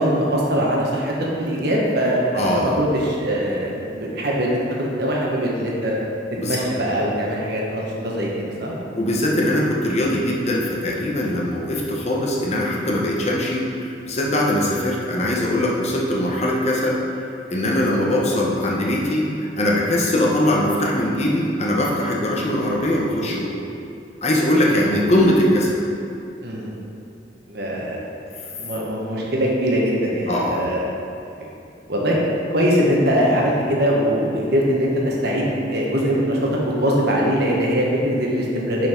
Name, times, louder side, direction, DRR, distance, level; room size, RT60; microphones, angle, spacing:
voice 1, 0.0-5.9 6.4-8.8 24.7-24.8 26.4-26.8 27.5-28.0 28.6-30.9 31.9-32.2 32.5-38.9, equal, 60° right, -3 dB, 1.3 m, -22 dB
voice 2, 2.3-2.7 6.4-6.6 8.9-17.0 17.5-23.6 24.2-25.8 30.3-30.7, left 1 dB, 35° left, -3 dB, 0.9 m, -21 dB
6.3 x 5.6 x 4.4 m, 2.6 s
head